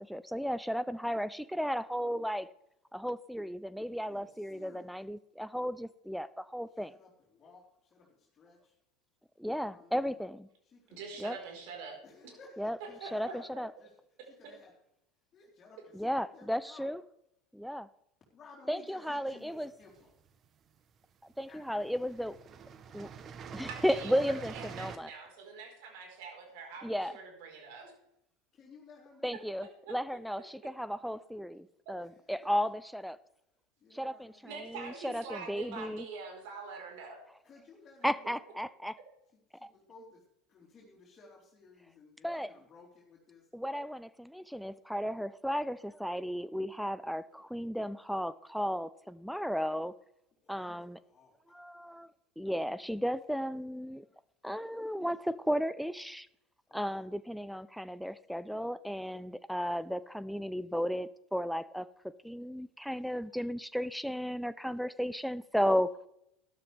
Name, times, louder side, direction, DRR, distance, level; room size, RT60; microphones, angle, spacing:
voice 1, 0.0-2.5 2.9-6.9 9.4-10.5 11.2-11.4 12.6-13.7 15.9-17.0 17.5-17.9 18.7-19.7 21.4-22.4 22.9-23.1 23.5-25.1 26.8-27.1 29.2-33.2 33.9-36.1 38.0-38.9 39.6-39.7 42.2-42.5 43.5-49.9 50.5-51.0 51.5-52.1 52.4-54.0 54.4-56.3 56.7-61.9 62.2-65.9, equal, ahead, 14 dB, 0.4 m, -34 dB
voice 2, 4.0-4.9 6.7-8.8 9.6-10.2 10.6-11.2 12.0-13.5 13.8-13.9 14.3-14.8 15.3-16.9 18.3-20.2 21.4-22.0 22.5-22.6 28.5-29.4 32.0-32.5 33.8-34.5 37.4-38.5 39.3-40.2 40.5-43.5 50.4-51.6 56.7-57.1 59.0-59.2 64.6-64.8, left 4 dB, 30° left, -5 dB, 4.0 m, -57 dB
voice 3, 10.9-12.0 12.8-13.4 23.7-27.9 29.9-30.0 34.4-37.2, right 5 dB, 65° right, 1 dB, 4.6 m, -45 dB
sound 1, 19.6-20.5 21.3-21.5 21.8-25.0, right 7 dB, 40° right, 1.0 m, -46 dB
12.5 x 12.0 x 3.5 m, 0.81 s
hypercardioid pair, 90°, 0 cm